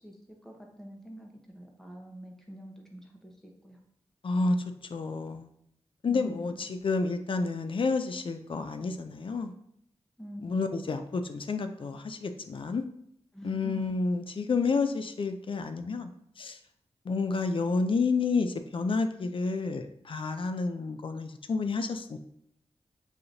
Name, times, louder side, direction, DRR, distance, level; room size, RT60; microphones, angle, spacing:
voice 1, 0.0-3.8 6.1-6.8 10.2-10.9 13.3-13.9, equal, 5° left, 0 dB, 1.0 m, -45 dB
voice 2, 4.2-4.6 4.9-5.5 6.0-9.5 10.4-12.8 13.4-16.1 16.4-16.6 17.1-22.2, left 4 dB, 50° left, 8 dB, 0.4 m, -30 dB
6.5 x 2.9 x 2.6 m, 0.72 s
wide cardioid pair, 75°, 11 cm